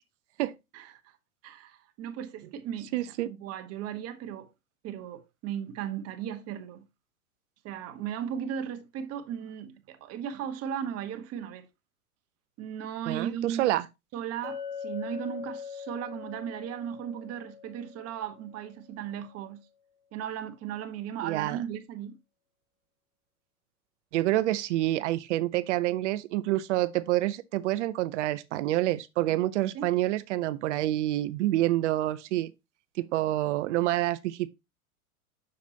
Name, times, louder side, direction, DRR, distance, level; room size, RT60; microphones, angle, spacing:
voice 1, 0.7-1.2 1.4-3.0 3.2-4.5 4.8-6.9 7.6-11.7 12.6-13.7 14.1-19.6 20.1-22.2 29.7-29.9, right 9 dB, 35° right, 1.2 m, -36 dB
voice 2, 2.9-3.3 13.1-13.9 21.2-21.6 24.1-32.5 33.0-34.5, right 15 dB, 55° right, 0.6 m, -27 dB
Chink clink, 14.4-18.7, left 6 dB, 15° left, 2.5 m, -41 dB
7.2 x 6.5 x 2.8 m
hypercardioid pair, 110°, 44 cm